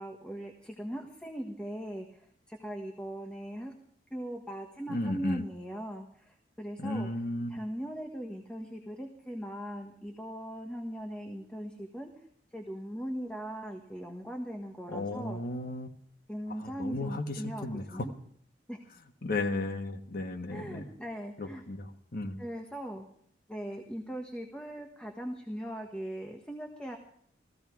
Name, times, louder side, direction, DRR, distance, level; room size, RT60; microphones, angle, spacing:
voice 1, 0.0-3.7 4.1-7.1 7.5-12.2 12.5-15.4 16.3-17.6 17.9-18.1 18.7-18.8 20.5-21.6 22.4-23.1 23.5-27.0, equal, 5° left, 2 dB, 1.4 m, -40 dB
voice 2, 4.9-5.4 6.8-7.6 14.9-15.9 16.6-18.1 19.2-20.9 21.4-22.4, left 2 dB, 55° left, 5 dB, 1.5 m, -34 dB
16.0 x 15.5 x 4.7 m, 0.63 s
head